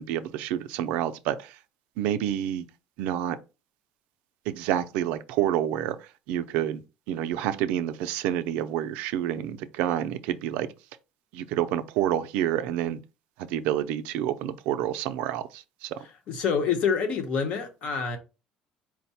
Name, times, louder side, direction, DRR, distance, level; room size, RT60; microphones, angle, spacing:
voice 1, 0.0-1.6 2.0-2.6 3.0-3.4 4.5-6.8 7.1-10.7 11.3-13.0 13.4-16.0, right 11 dB, 80° right, 0.4 m, -28 dB
voice 2, 16.3-18.2, left 6 dB, 55° left, 0.9 m, -26 dB
4.6 x 2.1 x 4.1 m
cardioid pair, 145°, 2 cm